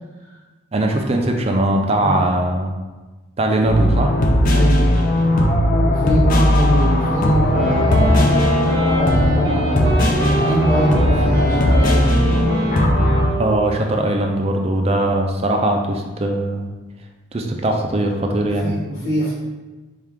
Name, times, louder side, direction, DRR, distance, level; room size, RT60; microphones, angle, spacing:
voice 1, 0.7-2.7 3.4-4.1 13.4-16.7 17.3-18.7, right 1 dB, 30° right, 3 dB, 0.4 m, -20 dB
sound 1, 3.6-13.3, left 1 dB, 40° left, 0.5 m, -17 dB
voice 2, 4.5-4.9 5.8-8.3 8.9-12.3 18.5-19.3, right 1 dB, 75° left, -11 dB, 1.0 m, -23 dB
Wind instrument woodwind instrument, 7.4-13.9, right 2 dB, 55° right, 0.8 m, -26 dB
Bowed string instrument, 8.2-12.5, left 2 dB, 20° left, 0.8 m, -33 dB
4.4 x 2.4 x 3.5 m, 1.2 s
head